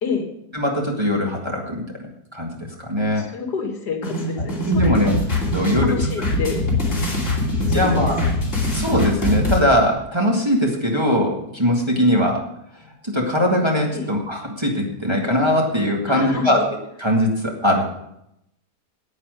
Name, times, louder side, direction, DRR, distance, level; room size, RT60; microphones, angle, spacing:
voice 1, 0.0-0.3 3.2-5.1 5.8-6.6 7.7-8.5 13.9-14.1 16.1-16.7, left 5 dB, 80° left, 3 dB, 2.3 m, -28 dB
voice 2, 0.5-1.8 2.3-2.5 2.8-3.2 4.6-5.2 5.5-6.0 7.6-8.2 8.7-12.4 13.0-16.6 17.0-17.9, equal, 15° right, -1 dB, 1.9 m, -20 dB
sound 1, 4.0-9.6, left 2 dB, 45° left, 3.1 m, -22 dB
9.8 x 8.8 x 6.5 m, 0.79 s
omnidirectional pair, 1.8 m